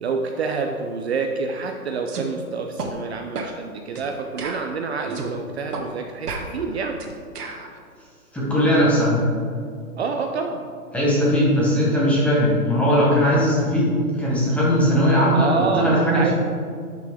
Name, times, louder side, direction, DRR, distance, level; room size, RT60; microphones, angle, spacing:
voice 1, 0.0-7.0 10.0-10.6 15.3-16.3, right 5 dB, 45° right, 4 dB, 0.6 m, -27 dB
sound 1, 2.1-2.3 2.8-2.9 3.4-3.6 4.0-4.1 4.4-5.3 5.7-5.9 6.3-7.7, right 3 dB, 80° right, 1.5 m, -32 dB
voice 2, 8.3-9.2 10.9-13.9 14.1-16.3, equal, 5° left, -7 dB, 1.1 m, -19 dB
11.0 x 6.0 x 3.5 m, 2.2 s
hypercardioid pair, 155°, 46 cm